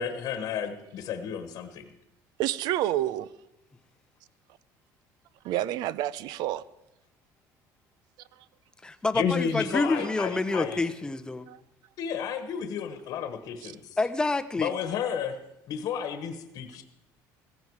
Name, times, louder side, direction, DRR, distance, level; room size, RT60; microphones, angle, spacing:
voice 1, 0.0-1.8 9.1-10.8 12.0-13.8 14.6-15.4 15.7-16.8, left 7 dB, 55° left, 1.3 m, -32 dB
voice 2, 2.4-3.3 5.4-6.6 11.5-11.6 13.6-13.7, right 13 dB, 65° right, 0.6 m, -29 dB
voice 3, 8.8-11.5 14.0-14.7, left 3 dB, 10° left, 0.7 m, -28 dB
15.5 x 15.0 x 4.8 m
cardioid pair, 140°, 7 cm